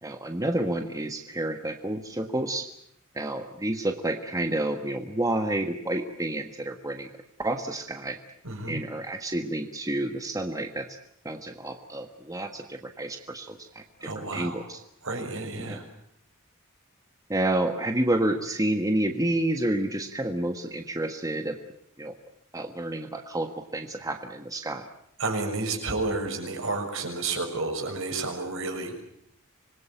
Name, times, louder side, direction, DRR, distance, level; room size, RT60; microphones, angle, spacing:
voice 1, 0.0-2.7 3.1-7.1 7.4-8.2 8.7-10.9 11.2-14.8 15.7-15.8 17.3-21.6 22.0-22.1 22.5-24.9, right 1 dB, 15° right, 5 dB, 1.4 m, -29 dB
voice 2, 8.4-8.8 14.0-14.7 15.0-15.8 25.2-28.9, right 3 dB, 65° right, 4 dB, 6.5 m, -31 dB
26.0 x 21.0 x 9.1 m, 0.73 s
head